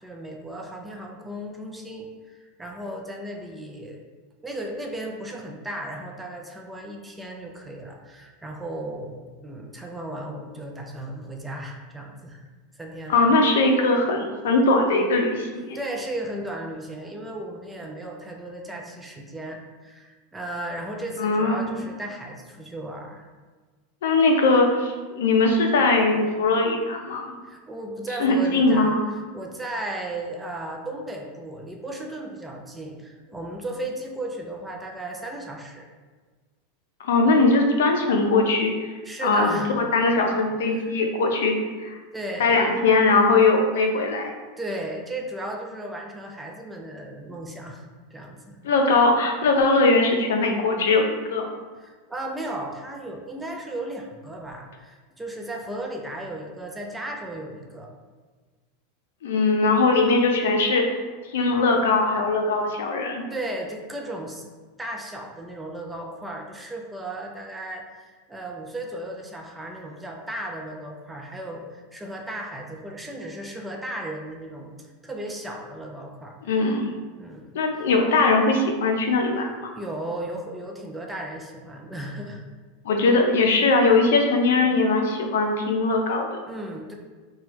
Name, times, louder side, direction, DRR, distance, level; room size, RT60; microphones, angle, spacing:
voice 1, 0.0-4.0 4.4-12.4 12.7-13.2 15.7-23.3 27.4-35.9 39.0-40.0 40.7-40.9 42.1-42.6 44.6-47.9 48.1-48.6 51.8-57.9 63.3-64.4 64.8-74.7 75.0-76.6 77.2-77.9 79.7-82.4 86.5-86.9, right 1 dB, 10° right, 1 dB, 0.4 m, -35 dB
voice 2, 13.1-15.8 21.2-21.6 24.0-27.3 28.2-29.0 37.0-38.9 39.2-42.0 42.4-44.3 48.6-51.5 59.2-60.8 61.3-63.2 76.5-76.9 77.5-79.7 82.8-86.3, left 3 dB, 80° left, 3 dB, 0.4 m, -20 dB
3.1 x 2.2 x 3.0 m, 1.4 s
supercardioid pair, 125°, 0 cm